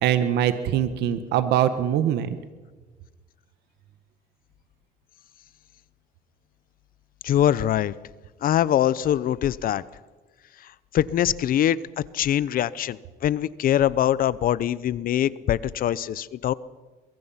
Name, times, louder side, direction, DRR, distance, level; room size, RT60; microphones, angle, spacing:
voice 1, 0.0-2.4, right 10 dB, 80° right, 10 dB, 1.5 m, -23 dB
voice 2, 7.2-7.9 8.4-9.8 10.9-11.8 12.1-16.5, left 11 dB, 60° left, 19 dB, 0.7 m, -23 dB
23.5 x 23.0 x 5.8 m, 1.3 s
cardioid pair, 110°, 17 cm